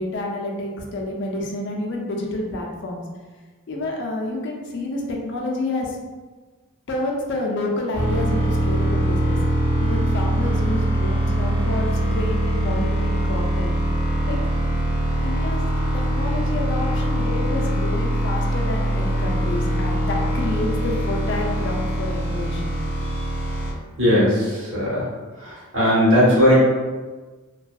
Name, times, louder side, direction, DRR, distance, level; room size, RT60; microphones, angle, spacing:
voice 1, 0.0-3.0 3.7-5.9 6.9-9.4 9.8-13.7 14.3-14.4 15.2-15.7 15.9-22.8, left 2 dB, 55° left, 0 dB, 0.4 m, -29 dB
sound 1, 7.9-23.7, right 1 dB, 85° right, 0.9 m, -22 dB
voice 2, 24.0-25.1 25.3-26.5, equal, 60° right, -8 dB, 1.1 m, -18 dB
2.6 x 2.3 x 2.3 m, 1.3 s
head